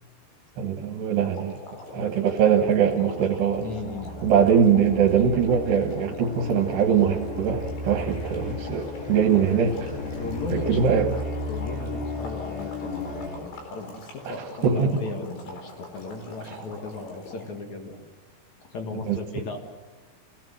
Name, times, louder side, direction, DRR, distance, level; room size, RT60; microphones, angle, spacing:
voice 1, 0.6-1.6 1.9-3.7 4.2-9.9 10.7-11.1 14.4-14.9 19.1-19.2, right 7 dB, 75° right, 2 dB, 3.5 m, -22 dB
sound 1, 1.2-17.6, left 3 dB, 75° left, 6.4 m, -43 dB
sound 2, 2.0-13.4, left 1 dB, 35° left, 4.9 m, -35 dB
voice 2, 3.6-4.3 10.2-10.9 11.5-18.0 18.7-19.6, left 3 dB, 55° left, 4 dB, 2.5 m, -36 dB
27.0 x 17.5 x 7.9 m, 1.3 s
omnidirectional pair, 5.1 m